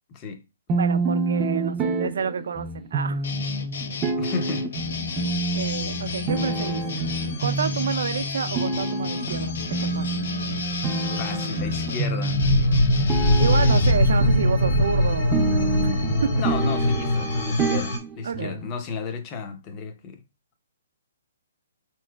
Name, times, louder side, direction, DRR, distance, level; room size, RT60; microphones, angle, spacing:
voice 1, 0.1-0.4 4.2-4.8 11.0-12.4 16.3-20.2, left 5 dB, 25° left, 0.6 m, -33 dB
sound 1, 0.7-18.7, right 3 dB, 20° right, 0.5 m, -28 dB
voice 2, 0.8-3.3 5.5-6.8 7.4-10.2 13.4-15.9 16.2-16.4 18.2-18.6, right 6 dB, 70° right, 0.5 m, -29 dB
sound 2, 3.2-13.9, left 4 dB, 70° left, 0.6 m, -33 dB
sound 3, 4.9-18.0, left 1 dB, 50° left, 1.8 m, -24 dB
4.2 x 3.0 x 2.3 m
hypercardioid pair, 150°, 0 cm